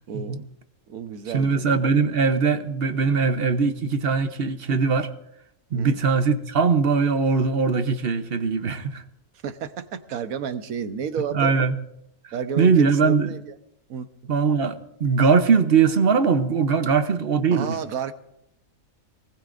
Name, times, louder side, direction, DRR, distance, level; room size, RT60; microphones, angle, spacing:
voice 1, 0.1-0.5 0.9-1.7 5.7-6.0 9.4-11.5 12.3-13.6 13.9-14.1 17.5-18.1, right 7 dB, 80° right, 1.3 m, -31 dB
voice 2, 1.3-5.1 5.7-9.0 11.3-11.7 12.6-13.4 14.3-17.8, right 5 dB, 50° right, 1.0 m, -21 dB
24.0 x 19.0 x 2.6 m
omnidirectional pair, 1.5 m